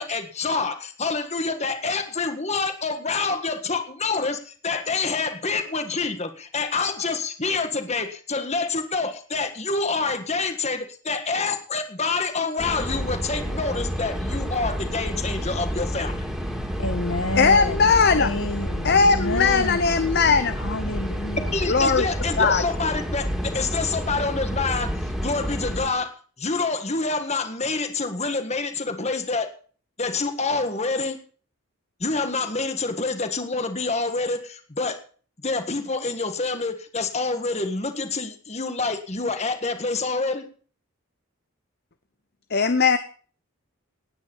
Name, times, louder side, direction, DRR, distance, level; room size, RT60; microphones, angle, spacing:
voice 1, 0.0-16.2 21.5-29.5 30.0-31.2 32.0-35.0 35.4-40.5, left 3 dB, 30° left, 1.7 m, -27 dB
sound 1, 12.6-25.9, equal, ahead, 2.8 m, -29 dB
voice 2, 16.8-19.9 20.6-21.6, left 1 dB, 65° left, 1.4 m, -29 dB
voice 3, 17.4-18.3 18.8-20.6 21.7-22.1 22.4-22.6 42.5-43.0, left 5 dB, 45° left, 0.8 m, -19 dB
18.5 x 9.6 x 5.6 m
head